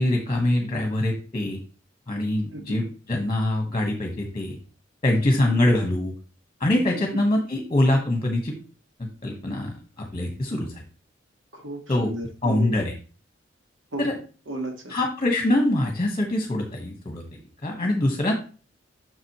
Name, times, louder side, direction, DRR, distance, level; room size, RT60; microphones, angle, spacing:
voice 1, 0.0-1.6 2.1-4.6 5.0-6.1 6.6-8.5 9.0-9.7 10.1-10.7 11.9-12.1 12.4-12.9 14.0-14.1 14.9-17.2 17.6-18.3, left 1 dB, 30° left, 3 dB, 1.3 m, -24 dB
voice 2, 11.5-12.8 13.9-15.0, right 1 dB, 70° right, 3 dB, 1.9 m, -34 dB
7.6 x 6.1 x 3.1 m, 0.37 s
head